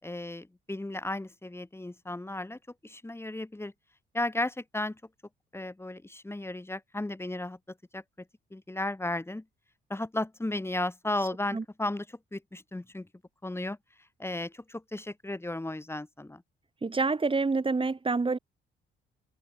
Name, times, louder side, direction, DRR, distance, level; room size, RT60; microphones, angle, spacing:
voice 1, 0.0-3.7 4.1-5.0 5.5-7.6 7.9-8.0 8.5-9.4 9.9-13.1 13.4-13.8 14.2-16.4, left 2 dB, 10° left, 7.4 m, -34 dB
voice 2, 16.8-18.4, right 4 dB, 25° right, 7.5 m, -27 dB
cardioid pair, 90°, 20 cm